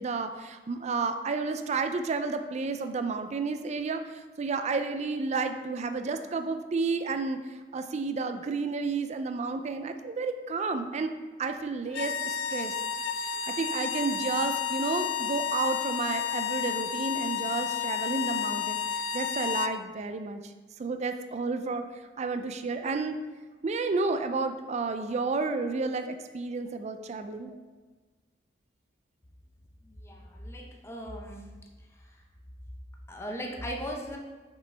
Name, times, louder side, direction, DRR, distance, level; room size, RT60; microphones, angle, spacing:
voice 1, 0.0-11.1 11.4-12.7 13.2-23.2 23.6-27.5, right 4 dB, 40° right, 8 dB, 0.4 m, -31 dB
sound 1, 11.9-19.8, left 7 dB, 90° left, 0.3 m, -31 dB
voice 2, 29.8-31.5 32.0-32.2 33.1-34.2, equal, 15° left, 0 dB, 0.7 m, -38 dB
6.0 x 5.2 x 3.3 m, 1.3 s
head